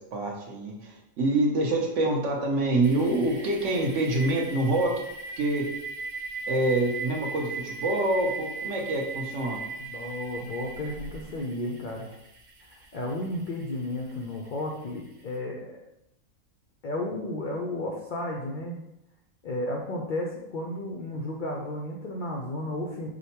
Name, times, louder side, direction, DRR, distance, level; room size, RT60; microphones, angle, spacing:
voice 1, 0.1-4.9 5.4-5.6 6.5-9.6, right 2 dB, 65° right, -1 dB, 1.0 m, -26 dB
sound 1, 2.8-15.3, right 4 dB, 50° right, 0.6 m, -39 dB
voice 2, 9.8-12.1 12.7-15.8 16.8-18.8 19.4-23.1, left 1 dB, 80° left, -1 dB, 0.4 m, -33 dB
5.0 x 2.1 x 2.8 m, 0.83 s
omnidirectional pair, 1.4 m